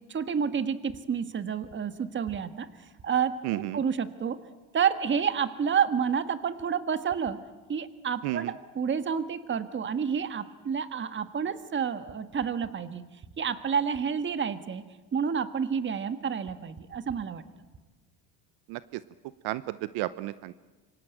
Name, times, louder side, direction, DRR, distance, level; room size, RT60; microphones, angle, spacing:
voice 1, 0.0-2.7 3.0-4.4 4.7-7.4 7.7-13.0 13.4-14.8 15.1-17.4, right 7 dB, 30° right, 11 dB, 1.6 m, -29 dB
voice 2, 3.4-3.8 8.2-8.5 18.7-18.8 19.4-20.5, right 17 dB, 70° right, 15 dB, 0.9 m, -32 dB
26.0 x 24.5 x 9.1 m, 1.2 s
cardioid pair, 120°, 40 cm